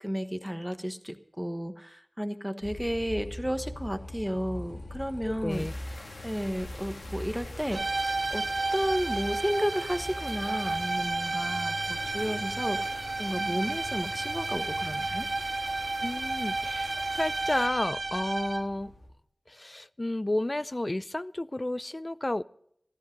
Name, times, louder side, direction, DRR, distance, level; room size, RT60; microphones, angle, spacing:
voice 1, 0.0-5.7 6.2-8.5 8.7-12.9 13.2-15.3, equal, 5° right, 9 dB, 1.1 m, -32 dB
Motorcycle, 2.6-19.1, left 1 dB, 85° left, 2.6 m, -43 dB
voice 2, 5.2-5.7 16.0-18.9 19.5-22.4, left 1 dB, 35° left, 17 dB, 0.5 m, -31 dB
sound 1, 5.5-17.7, left 2 dB, 65° left, 2.0 m, -47 dB
sound 2, 7.7-18.8, right 3 dB, 70° right, 0.7 m, -32 dB
14.0 x 13.5 x 5.2 m, 0.71 s
wide cardioid pair, 60°, 0 cm